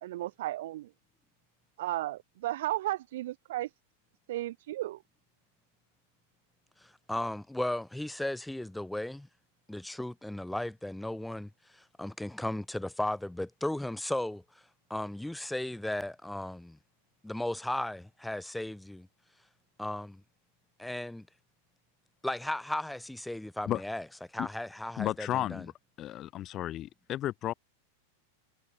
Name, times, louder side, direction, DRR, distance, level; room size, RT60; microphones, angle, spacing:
voice 1, 0.0-0.9 1.8-3.7 4.3-5.0, right 15 dB, 70° right, 3.4 m, -34 dB
voice 2, 6.8-9.3 9.7-14.4 14.9-16.8 17.2-19.1 19.8-20.2 20.8-21.3 22.2-24.0 24.3-25.7, left 1 dB, 5° left, 6.1 m, -35 dB
voice 3, 25.0-25.7 26.0-27.5, left 13 dB, 30° left, 2.4 m, -33 dB
supercardioid pair, 140°, 0 cm